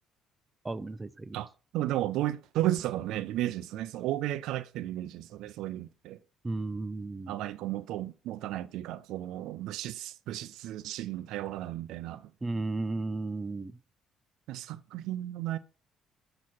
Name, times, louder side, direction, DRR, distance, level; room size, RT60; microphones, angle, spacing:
voice 1, 0.6-1.4 6.4-7.4 12.4-13.7, right 2 dB, 20° right, 0.4 m, -34 dB
voice 2, 1.3-6.2 7.3-12.3 14.5-15.6, right 14 dB, 80° right, 0.4 m, -34 dB
7.5 x 2.9 x 5.7 m
supercardioid pair, 80°, 0 cm